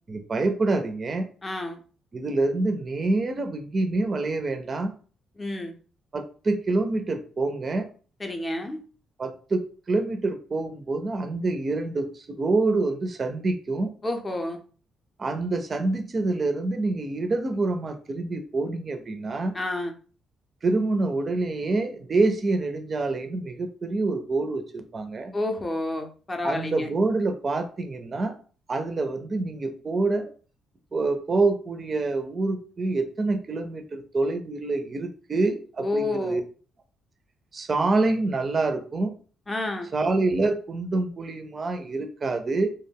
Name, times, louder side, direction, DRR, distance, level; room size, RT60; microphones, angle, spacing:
voice 1, 0.1-1.3 2.1-4.9 6.1-7.9 9.2-13.9 15.2-19.5 20.6-25.3 26.4-28.4 28.7-30.3 30.9-36.4 37.5-39.1 39.9-42.7, right 3 dB, 35° right, 7 dB, 0.4 m, -26 dB
voice 2, 1.4-1.8 5.4-5.7 8.2-8.8 14.0-14.6 19.5-19.9 25.3-26.9 35.8-36.4 39.5-39.9, left 2 dB, 25° left, 4 dB, 0.5 m, -29 dB
2.2 x 2.0 x 3.4 m, 0.40 s
cardioid pair, 90°, 0 cm